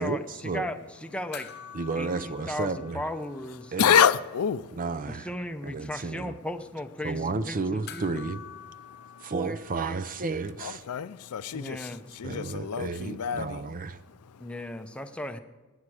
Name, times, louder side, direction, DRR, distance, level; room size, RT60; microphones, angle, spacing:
voice 1, 0.0-0.7 1.7-3.0 3.7-4.0 4.7-5.3 5.6-6.4 7.0-8.4 9.2-10.8 12.2-14.0, right 4 dB, 40° right, 0.6 m, -32 dB
voice 2, 0.5-1.5 2.0-3.7 5.1-8.3 11.5-12.0 14.4-15.4, left 1 dB, 5° left, 0.7 m, -36 dB
sound 1, 1.3-4.0 4.2-4.3 7.9-10.5 12.6-12.7, left 8 dB, 50° left, 0.9 m, -47 dB
voice 3, 3.8-4.6 10.6-11.8 12.2-13.6, left 8 dB, 75° left, 0.4 m, -25 dB
18.5 x 9.8 x 4.8 m
head